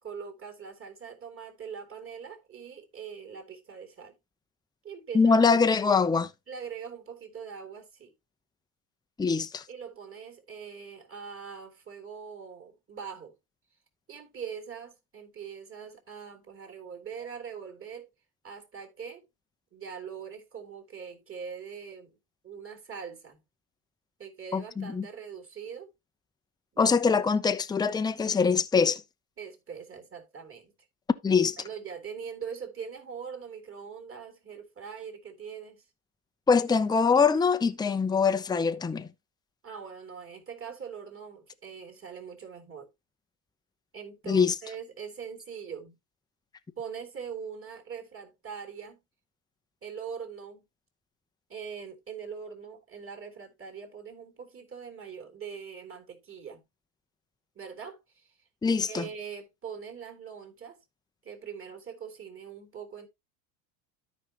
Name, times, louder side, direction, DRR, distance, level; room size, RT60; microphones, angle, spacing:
voice 1, 0.0-4.1 4.8-5.4 6.5-8.1 9.7-13.3 14.1-18.1 18.4-19.2 19.7-22.2 22.4-23.4 24.2-25.9 26.7-26.9 29.4-30.7 31.6-35.8 39.6-42.9 43.9-45.9 46.8-49.0 49.8-50.6 51.5-56.6 57.5-58.3 58.8-60.8 61.2-63.1, right 7 dB, 25° right, 3.3 m, -42 dB
voice 2, 5.1-6.3 9.2-9.6 24.5-25.1 26.8-29.0 31.2-31.6 36.5-39.1 44.3-44.5 58.6-59.1, left 5 dB, 10° left, 0.6 m, -23 dB
13.0 x 5.3 x 2.9 m
supercardioid pair, 90°, 47 cm